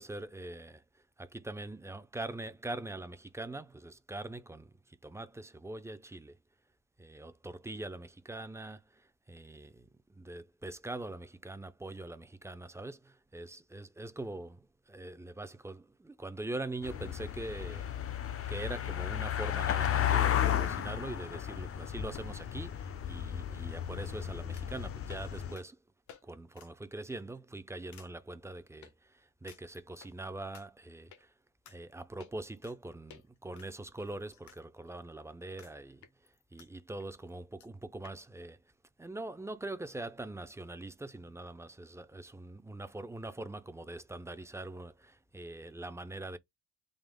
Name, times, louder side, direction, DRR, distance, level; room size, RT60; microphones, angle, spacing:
voice 1, 0.0-6.4 7.0-17.9 18.5-25.8 26.2-31.3 31.7-38.6 39.0-46.4, right 2 dB, 10° right, 0.5 m, -43 dB
sound 1, 16.8-25.6, left 10 dB, 50° left, 0.7 m, -33 dB
sound 2, 21.9-23.2 24.5-24.8 25.1-25.3 25.5-25.6 26.1-26.2 26.5-26.7 27.1-27.4 27.9-28.1 28.8-28.9 29.5-30.1 30.5-30.6 31.1-31.2 31.6-31.8 32.2-32.8 33.1-33.2 33.5-34.6 34.9-35.0 35.6-35.7 36.0-36.7 37.0-37.1 37.3-37.4 37.6-37.7 38.0-38.2, left 5 dB, 75° left, 1.0 m, -51 dB
3.9 x 2.4 x 3.5 m
cardioid pair, 90°, 30 cm